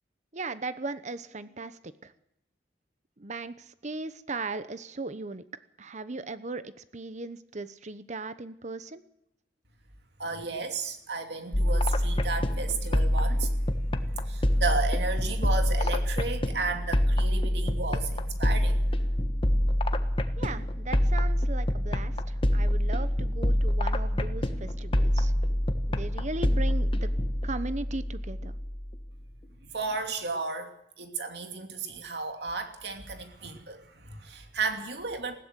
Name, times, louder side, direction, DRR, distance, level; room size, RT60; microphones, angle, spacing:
voice 1, 0.3-2.1 3.2-5.4 5.8-9.0 20.4-25.3 25.9-27.1 27.4-28.6, right 3 dB, 40° right, 13 dB, 1.0 m, -37 dB
voice 2, 10.2-13.7 14.0-18.9 29.6-35.4, right 4 dB, 65° right, 5 dB, 2.7 m, -34 dB
sound 1, 11.5-29.1, equal, 30° left, 1.3 m, -26 dB
20.5 x 16.0 x 8.2 m, 0.79 s
head